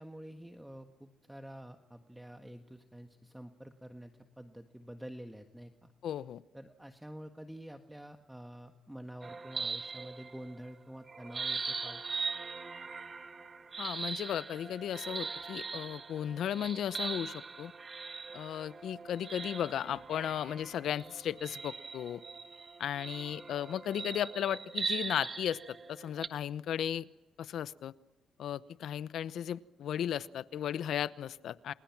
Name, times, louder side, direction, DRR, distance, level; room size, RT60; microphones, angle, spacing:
voice 1, 0.0-5.9 6.5-12.0, right 1 dB, 5° right, 5 dB, 1.6 m, -48 dB
voice 2, 6.0-6.4 13.8-17.7 18.3-22.2 22.8-27.1 27.4-27.9 28.4-31.7, left 10 dB, 70° left, 15 dB, 0.9 m, -35 dB
sound 1, 9.2-10.7 11.1-26.3, right 4 dB, 35° right, 1.6 m, -41 dB
29.5 x 28.5 x 6.1 m, 0.96 s
cardioid pair, 90°, 0 cm